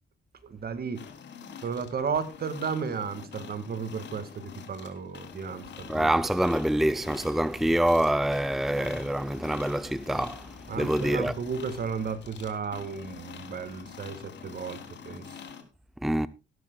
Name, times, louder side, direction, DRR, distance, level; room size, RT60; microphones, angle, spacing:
voice 1, 0.4-1.0 1.6-6.1 10.7-15.2, right 6 dB, 50° right, 2.1 m, -34 dB
sound 1, 1.0-15.6, left 7 dB, 60° left, 3.2 m, -46 dB
voice 2, 5.9-10.4 10.8-11.3 16.0-16.3, right 1 dB, ahead, 0.6 m, -25 dB
16.5 x 13.5 x 2.3 m
cardioid pair, 90°, 20 cm